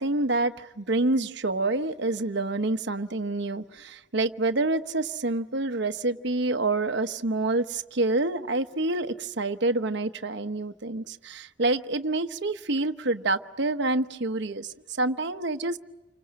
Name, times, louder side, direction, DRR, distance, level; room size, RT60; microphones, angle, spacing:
voice 1, 0.0-15.8, right 2 dB, 65° right, 8 dB, 1.0 m, -27 dB
29.0 x 25.5 x 7.6 m, 1.1 s
head